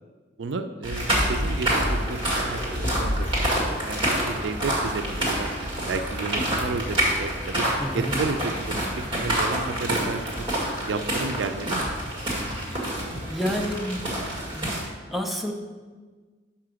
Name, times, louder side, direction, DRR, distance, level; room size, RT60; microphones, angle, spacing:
voice 1, 0.4-5.5 5.9-10.4 10.9-11.9, right 4 dB, 65° right, 8 dB, 0.4 m, -32 dB
sound 1, 0.8-14.8, right 1 dB, 25° right, 2.0 m, -27 dB
voice 2, 7.8-8.1 12.7-14.1 14.5-14.7 15.1-15.5, equal, ahead, 0 dB, 0.7 m, -30 dB
5.8 x 5.7 x 6.2 m, 1.4 s
head